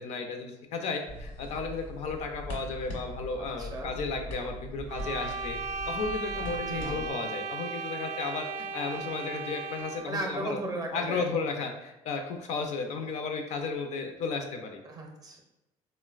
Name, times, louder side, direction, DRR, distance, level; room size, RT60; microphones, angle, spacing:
voice 1, 0.0-5.6 5.9-10.6 10.9-14.8, left 4 dB, 60° left, 4 dB, 0.4 m, -34 dB
sound 1, 1.1-7.1, equal, 80° left, 1.1 m, -41 dB
voice 2, 3.4-3.9 6.6-7.0 10.1-11.3 14.8-15.4, right 2 dB, 30° right, 1 dB, 0.5 m, -36 dB
sound 2, 4.9-10.2, right 4 dB, 85° right, 0.4 m, -36 dB
3.7 x 2.0 x 2.3 m, 0.94 s
cardioid pair, 120°, 13 cm